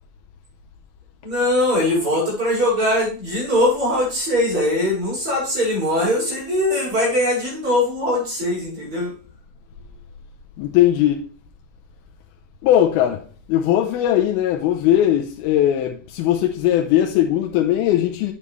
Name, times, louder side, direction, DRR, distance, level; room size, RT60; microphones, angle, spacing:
voice 1, 1.2-9.1, left 1 dB, 35° right, 5.8 m, -21 dB
voice 2, 10.6-11.2 12.6-13.2 13.5-18.3, left 12 dB, 85° left, 2.5 m, -19 dB
8.5 x 7.2 x 3.1 m
omnidirectional pair, 4.3 m